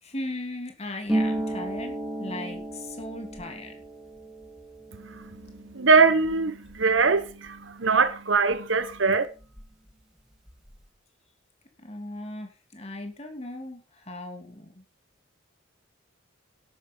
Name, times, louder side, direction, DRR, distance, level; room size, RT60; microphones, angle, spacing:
voice 1, 0.0-3.7 11.8-14.8, left 1 dB, 30° left, 2.8 m, -38 dB
Harp, 1.1-8.6 8.8-9.9 10.2-10.8, right 1 dB, 5° right, 2.9 m, -35 dB
voice 2, 4.9-9.3, right 4 dB, 70° right, 1.2 m, -22 dB
12.0 x 10.0 x 5.5 m
head